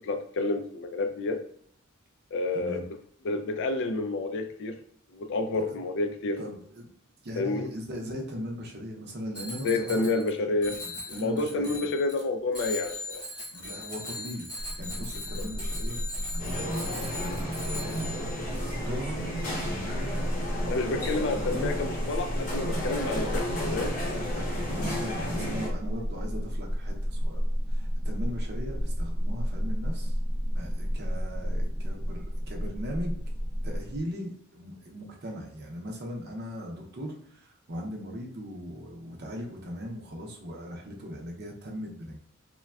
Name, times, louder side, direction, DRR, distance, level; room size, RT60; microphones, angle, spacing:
voice 1, 0.0-1.4 2.3-2.9 3.2-4.8 5.1-6.4 7.4-7.7 9.6-10.8 11.1-13.2 15.4-15.5 20.7-23.9, left 3 dB, 60° left, 7 dB, 0.3 m, -29 dB
voice 2, 6.4-6.9 7.2-10.1 10.7-11.8 13.5-14.5 14.8-16.0 16.3-18.0 18.8-20.3 20.6-21.8 24.3-27.4 27.7-30.2 30.5-33.2 33.6-42.2, equal, 50° right, 1 dB, 0.6 m, -39 dB
Bicycle bell, 9.3-10.3 10.6-12.2 12.5-18.4, left 2 dB, 20° left, 1.1 m, -39 dB
sound 1, 14.6-34.0, equal, 5° right, 0.5 m, -32 dB
sound 2, 16.4-25.7, equal, 40° left, 0.7 m, -33 dB
3.3 x 2.2 x 2.2 m, 0.64 s
head